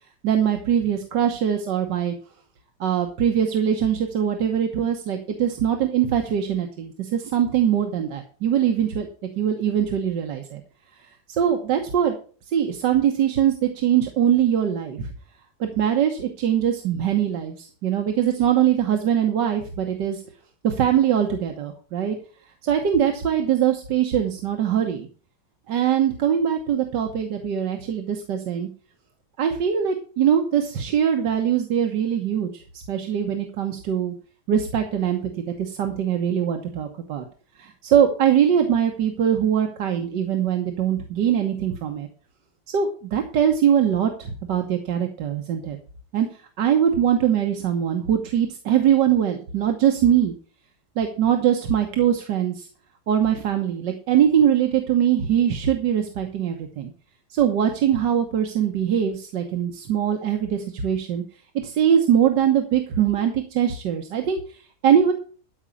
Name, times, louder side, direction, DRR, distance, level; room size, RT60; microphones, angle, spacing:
voice 1, 0.2-2.1 2.8-9.1 9.4-10.6 11.0-12.1 12.5-15.1 15.6-20.2 20.6-22.2 22.6-25.1 25.7-28.7 29.4-34.1 34.5-37.2 37.6-42.1 42.7-45.8 46.1-46.3 46.6-50.3 51.0-52.7 53.1-56.9 57.3-61.2 61.6-65.1, right 9 dB, 90° right, 4 dB, 1.8 m, -22 dB
13.0 x 5.0 x 7.0 m, 0.40 s
omnidirectional pair, 1.8 m